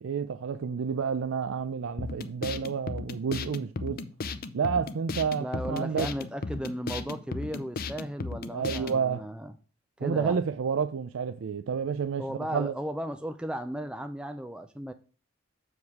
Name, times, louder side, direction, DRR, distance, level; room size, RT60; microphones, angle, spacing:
voice 1, 0.0-4.0 4.5-6.1 8.5-9.2 10.0-12.2 12.5-12.7, right 6 dB, 80° right, 0.4 m, -30 dB
sound 1, 2.0-9.0, left 3 dB, 50° left, 0.6 m, -36 dB
voice 2, 5.4-9.5 10.0-10.4 12.2-14.9, equal, 5° right, 0.4 m, -35 dB
7.2 x 4.8 x 4.7 m
head